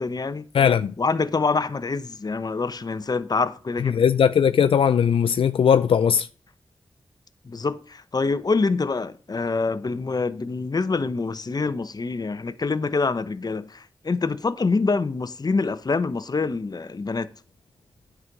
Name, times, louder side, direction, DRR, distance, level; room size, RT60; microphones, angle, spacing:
voice 1, 0.0-0.5 1.0-4.0 7.4-17.3, left 4 dB, 45° left, 1.0 m, -26 dB
voice 2, 0.5-0.9 3.8-6.3, left 7 dB, 80° left, 0.4 m, -19 dB
9.6 x 6.3 x 5.3 m
cardioid pair, 50°, 9 cm